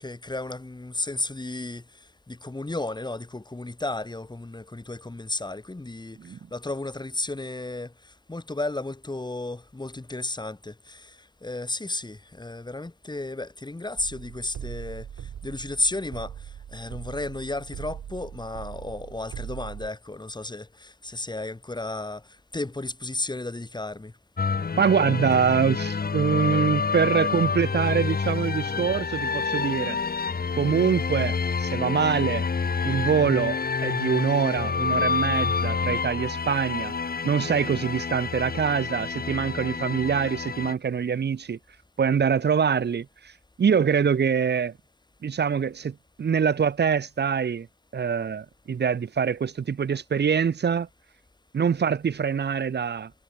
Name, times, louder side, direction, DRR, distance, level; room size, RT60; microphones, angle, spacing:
voice 1, 0.0-1.8 2.3-7.9 8.3-11.2 11.4-15.1 15.4-16.3 16.7-22.2 22.5-24.1, left 2 dB, 15° left, 6.1 m, -33 dB
sound 1, 14.0-19.9, right 9 dB, 60° right, 7.5 m, -40 dB
sound 2, 24.4-40.7, left 5 dB, 30° left, 2.1 m, -28 dB
voice 2, 24.8-30.0 30.6-32.5 32.8-36.9 37.2-41.6 42.0-43.3 43.6-44.7 45.2-47.7 47.9-50.9 51.5-53.1, right 6 dB, 35° right, 1.0 m, -24 dB
cardioid pair, 90°, 30 cm